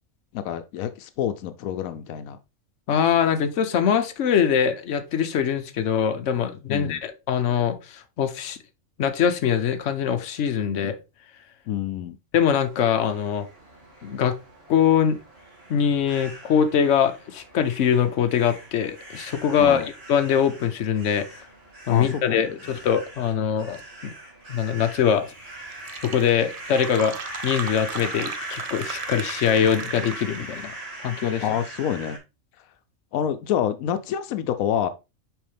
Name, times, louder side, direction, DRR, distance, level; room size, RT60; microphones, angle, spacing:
voice 1, 0.3-2.4 6.7-7.0 11.7-12.2 19.6-19.9 21.9-22.4 31.4-32.2 33.1-34.9, left 9 dB, 90° left, 1.0 m, -27 dB
voice 2, 2.9-8.6 9.0-10.9 12.3-13.5 14.0-14.3 14.7-15.2 15.7-21.3 21.9-24.1 24.5-25.3 26.0-27.2 27.4-30.7 31.0-31.4, left 8 dB, 65° left, 1.1 m, -23 dB
sound 1, 12.6-32.2, right 1 dB, 50° right, 2.3 m, -40 dB
Fill (with liquid), 25.4-25.5 25.7-30.5, right 6 dB, 65° right, 0.3 m, -37 dB
6.1 x 4.7 x 3.4 m
omnidirectional pair, 1.4 m